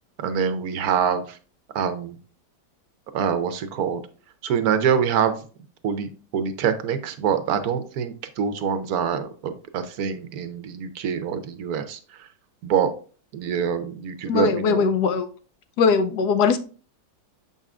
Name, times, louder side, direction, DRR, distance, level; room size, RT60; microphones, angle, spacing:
voice 1, 0.2-1.4 1.7-2.2 3.1-4.0 4.4-5.4 5.8-12.3 12.6-12.9 13.3-14.9, right 7 dB, 65° right, 9 dB, 1.0 m, -25 dB
voice 2, 14.3-15.3 15.8-16.6, left 5 dB, 70° left, 9 dB, 1.1 m, -20 dB
7.3 x 5.5 x 2.4 m, 0.38 s
omnidirectional pair, 2.0 m